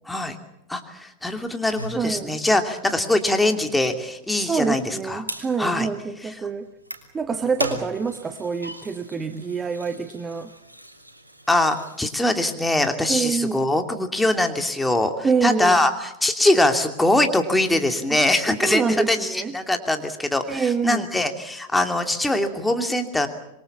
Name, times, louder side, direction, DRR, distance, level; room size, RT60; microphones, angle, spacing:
voice 1, 0.7-5.2 5.6-5.9 11.5-23.3, left 1 dB, 5° left, 5 dB, 2.8 m, -22 dB
sound 1, 1.8-12.0, right 1 dB, 85° right, 3.0 m, -38 dB
voice 2, 1.9-2.4 4.4-6.7 7.1-10.5 13.1-13.7 15.2-15.8 18.1-18.2 18.6-19.6 20.5-21.0, right 5 dB, 15° right, 8 dB, 1.3 m, -26 dB
26.5 x 23.0 x 7.3 m, 0.84 s
figure-of-eight pair, 90°, 0 cm